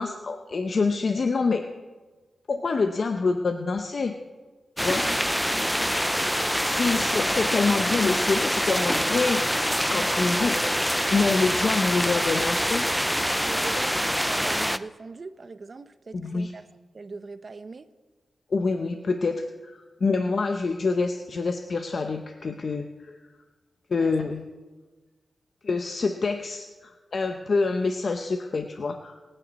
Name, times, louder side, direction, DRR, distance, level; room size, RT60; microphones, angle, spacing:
voice 1, 0.0-1.6 2.5-4.2 4.8-5.0 6.7-9.6 9.9-10.6 11.1-12.9 16.1-16.5 18.5-23.2 23.9-24.4 25.6-29.1, left 4 dB, 50° left, 6 dB, 0.7 m, -26 dB
sound 1, 4.8-14.8, equal, ahead, 0.4 m, -25 dB
voice 2, 5.5-6.0 6.9-7.1 13.4-16.6 16.9-17.9 24.0-24.3, right 3 dB, 40° right, 12 dB, 0.7 m, -41 dB
24.5 x 9.1 x 4.1 m, 1.3 s
wide cardioid pair, 115°, 0 cm